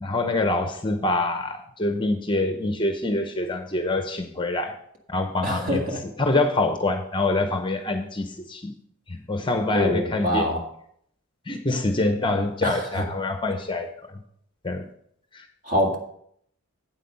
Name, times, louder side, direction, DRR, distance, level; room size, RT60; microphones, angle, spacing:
voice 1, 0.0-4.8 5.1-5.8 6.2-8.7 9.1-10.5 11.5-13.9 14.6-14.9 15.3-15.5, left 2 dB, 20° left, 6 dB, 0.7 m, -25 dB
voice 2, 5.4-6.0 9.7-10.7 12.6-13.0 15.6-16.0, equal, 35° right, 1 dB, 1.9 m, -25 dB
8.8 x 8.3 x 5.4 m, 0.68 s
head